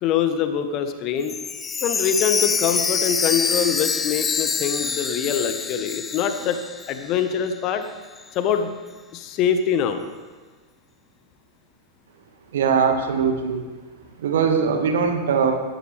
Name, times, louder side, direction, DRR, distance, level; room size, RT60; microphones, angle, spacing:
voice 1, 0.0-1.3 1.8-6.6 6.9-7.9 8.3-8.7 9.1-10.0, left 8 dB, 40° left, 8 dB, 1.3 m, -24 dB
Chime, 1.2-7.2 7.5-7.6 8.2-8.3, left 5 dB, 20° left, 0.8 m, -26 dB
voice 2, 12.5-13.6 14.2-15.5, right 6 dB, 60° right, 5 dB, 1.9 m, -21 dB
18.5 x 13.0 x 3.5 m, 1.3 s
figure-of-eight pair, 90°, 0 cm